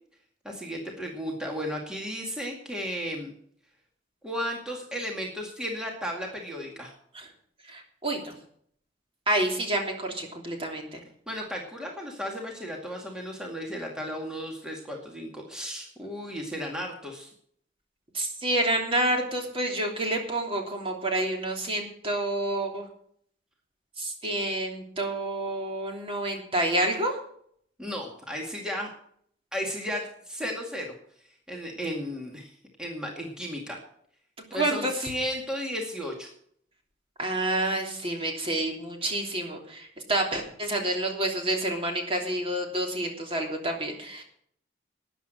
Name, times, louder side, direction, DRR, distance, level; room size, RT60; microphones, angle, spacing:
voice 1, 0.4-3.3 4.2-6.9 11.3-17.3 27.8-28.9 29.5-30.9 31.5-32.5 32.8-33.8 34.5-36.3, equal, 5° right, -1 dB, 2.2 m, -34 dB
voice 2, 7.7-8.3 9.3-11.0 18.1-22.8 24.0-27.1 34.5-34.9 37.2-44.2, right 1 dB, 30° right, 1 dB, 3.0 m, -28 dB
13.0 x 10.0 x 6.5 m, 0.63 s
head